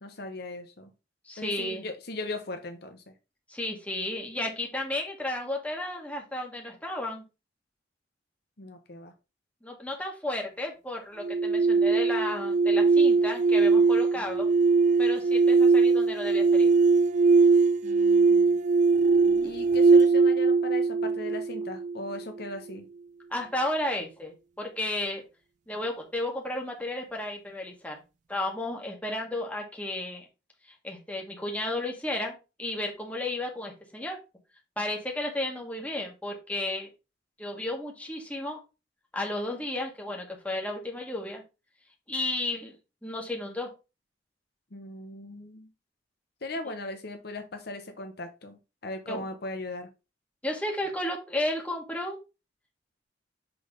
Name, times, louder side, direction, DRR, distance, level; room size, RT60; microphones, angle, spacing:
voice 1, 0.0-0.9 1.4-3.1 8.6-9.1 14.2-14.3 17.8-18.6 19.4-22.9 44.7-45.7 46.4-49.9, left 2 dB, 60° left, 6 dB, 1.0 m, -38 dB
voice 2, 1.3-1.8 3.5-7.2 9.6-14.5 15.0-16.7 19.2-19.5 23.3-25.2 25.7-28.0 28.3-30.3 30.8-34.2 34.8-36.9 37.4-38.6 39.1-41.4 42.1-42.8 43.0-43.7 49.1-49.2 50.4-52.2, left 1 dB, 10° left, 0 dB, 1.6 m, -33 dB
sound 1, 11.2-22.2, right 4 dB, 40° right, 0.3 m, -21 dB
6.2 x 3.4 x 5.2 m, 0.28 s
head